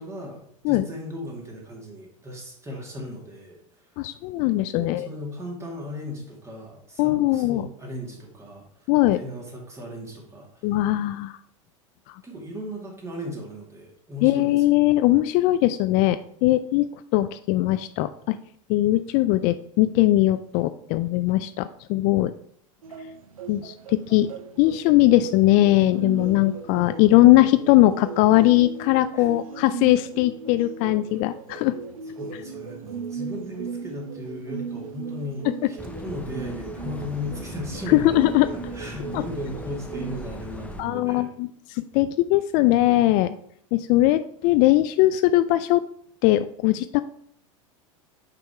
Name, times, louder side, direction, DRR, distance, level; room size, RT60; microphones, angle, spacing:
voice 1, 0.0-4.1 4.8-10.7 12.2-14.7 29.1-29.3 32.2-38.2 38.5-41.3, left 1 dB, 15° right, -1 dB, 2.4 m, -37 dB
voice 2, 4.0-5.1 7.0-7.7 8.9-9.2 10.6-11.3 14.2-16.9 17.1-18.4 18.7-22.3 23.5-24.3 24.6-31.7 37.9-38.5 39.1-39.2 40.8-41.5 41.7-43.4 43.7-45.8 46.2-47.0, left 16 dB, 50° left, 12 dB, 0.4 m, -20 dB
sound 1, 22.8-40.3, right 5 dB, 90° right, 0.7 m, -37 dB
sound 2, 35.8-40.8, left 1 dB, 10° left, 0.6 m, -39 dB
5.7 x 5.3 x 4.3 m, 0.66 s
hypercardioid pair, 100°, 17 cm